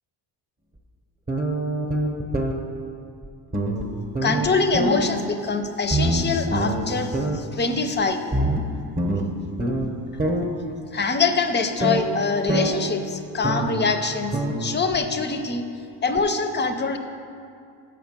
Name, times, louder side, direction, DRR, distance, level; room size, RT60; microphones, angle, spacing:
sound 1, 1.3-2.5 3.2-3.3 3.5-3.8 4.1-5.0 5.9-6.9 7.1-7.4 8.3-9.9 10.2-10.4 11.8-12.0 12.5-12.7 13.4-13.8 14.3-14.6 14.9-15.0 16.2-16.3, right 1 dB, 20° right, 0.8 m, -24 dB
voice 1, 4.2-8.2 10.9-14.3 14.6-15.7 16.0-17.0, left 4 dB, 25° left, 7 dB, 0.5 m, -24 dB
7.3 x 5.7 x 7.3 m, 2.4 s
cardioid pair, 130°, 45 cm